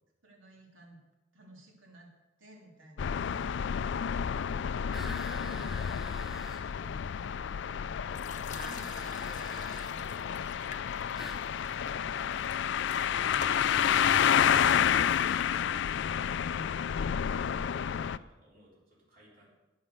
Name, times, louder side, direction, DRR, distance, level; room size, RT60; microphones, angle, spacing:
voice 1, 0.2-1.0 1.3-2.1 2.4-3.9 4.3-5.2 8.6-8.9 14.7-15.5, equal, 80° right, 0 dB, 3.2 m, -53 dB
sound 1, 3.0-18.2, left 8 dB, 60° left, 0.3 m, -30 dB
sound 2, 4.9-6.7 8.5-9.9 11.2-11.5, equal, ahead, 0.6 m, -45 dB
voice 2, 5.3-9.6 9.9-10.3 11.1-14.5 15.1-15.3 15.8-19.5, equal, 45° right, -5 dB, 3.7 m, -56 dB
sound 3, 8.1-15.9, left 6 dB, 40° left, 0.8 m, -47 dB
12.5 x 9.5 x 6.6 m, 1.1 s
head